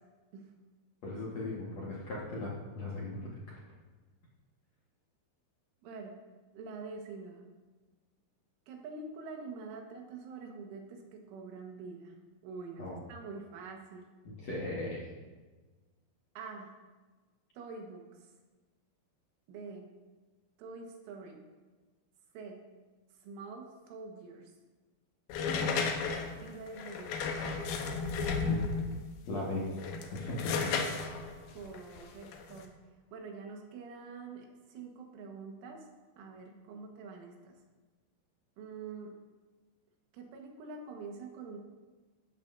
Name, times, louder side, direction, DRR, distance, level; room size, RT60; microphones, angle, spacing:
voice 1, 1.0-3.6 12.8-13.0 14.2-15.1 28.5-28.6 29.3-29.7 30.1-30.7, left 2 dB, 60° left, -5 dB, 1.9 m, -38 dB
voice 2, 5.8-6.2 6.5-7.4 8.7-12.1 12.4-14.1 16.4-16.7 17.6-18.0 19.5-19.9 20.6-21.5 22.4-22.6 23.2-24.5 25.6-25.9 26.4-27.3 31.5-32.7 33.1-35.8 36.2-37.5 38.6-39.1 40.1-41.6, right 4 dB, 85° right, 1 dB, 4.0 m, -45 dB
sound 1, 25.3-29.0 29.7-32.6, left 5 dB, 80° left, 2.1 m, -33 dB
15.0 x 12.5 x 2.7 m, 1.3 s
omnidirectional pair, 5.5 m